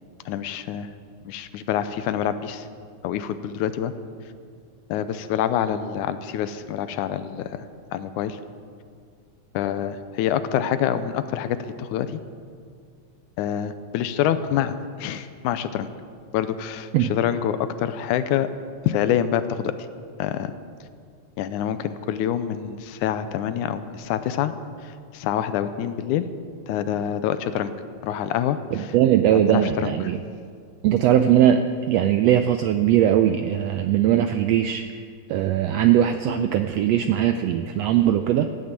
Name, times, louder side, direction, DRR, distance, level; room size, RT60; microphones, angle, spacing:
voice 1, 0.3-0.9 1.3-2.7 3.0-3.9 4.9-7.5 7.9-8.4 9.5-12.1 13.4-15.9 16.3-18.5 18.9-19.7 20.2-20.5 21.4-24.5 25.1-26.3 26.7-27.7 28.0-28.9 29.3-29.9, left 10 dB, 85° left, 11 dB, 2.1 m, -26 dB
voice 2, 28.7-30.2 30.8-34.8 35.3-38.5, right 10 dB, 85° right, 8 dB, 1.4 m, -20 dB
16.0 x 8.8 x 8.3 m, 2.2 s
omnidirectional pair, 3.5 m